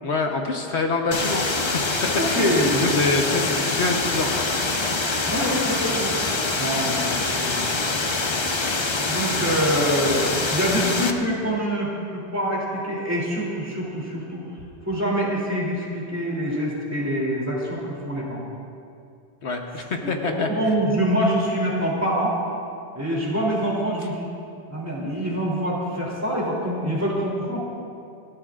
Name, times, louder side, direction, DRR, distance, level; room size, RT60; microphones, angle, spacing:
voice 1, 0.0-1.4 2.3-4.5 19.4-20.8, left 3 dB, 75° left, 2 dB, 1.4 m, -26 dB
sound 1, 1.1-11.1, left 3 dB, 30° left, 0.7 m, -25 dB
voice 2, 2.1-2.8 3.3-3.4 5.3-6.1 6.6-7.0 7.4-8.0 9.1-14.4 14.9-18.5 20.0-22.3 22.9-24.3 24.7-27.6, equal, 15° right, -5 dB, 3.1 m, -25 dB
29.0 x 12.5 x 2.5 m, 2.5 s
omnidirectional pair, 1.2 m